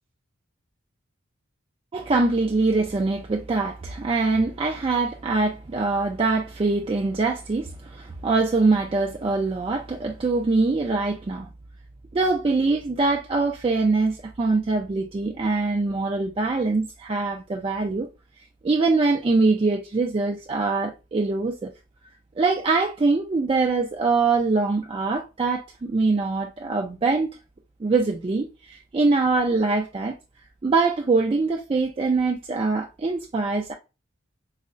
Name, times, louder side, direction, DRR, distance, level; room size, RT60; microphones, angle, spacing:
voice 1, 1.9-11.5 12.1-18.1 18.6-21.7 22.4-27.3 27.8-30.2 30.6-33.7, right 3 dB, 25° right, 0.3 m, -23 dB
4.7 x 2.1 x 2.5 m
head